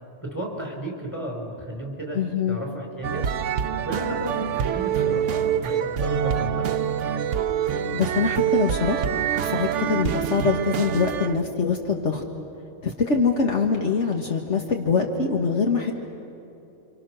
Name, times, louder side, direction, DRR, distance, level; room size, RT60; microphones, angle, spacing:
voice 1, 0.2-2.2 2.4-3.3 3.8-6.7, right 1 dB, 15° left, -1 dB, 5.1 m, -33 dB
voice 2, 2.1-2.6 7.9-9.1 9.4-12.2 12.8-15.9, left 5 dB, 65° left, 1 dB, 1.8 m, -23 dB
sound 1, 3.0-11.4, right 9 dB, 70° right, 1.0 m, -25 dB
29.5 x 26.0 x 6.4 m, 2.9 s
omnidirectional pair, 1.3 m